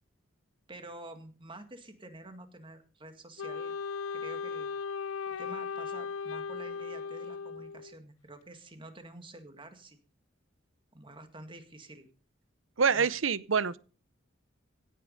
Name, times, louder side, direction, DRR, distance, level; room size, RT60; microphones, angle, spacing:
voice 1, 0.7-3.7 4.1-4.7 5.4-10.0 10.9-12.1 12.9-13.1, right 1 dB, 25° right, 1.9 m, -48 dB
Wind instrument woodwind instrument, 3.4-8.0, left 5 dB, 80° left, 0.6 m, -37 dB
voice 2, 12.8-13.8, right 6 dB, 75° right, 0.7 m, -26 dB
16.5 x 8.4 x 5.4 m
head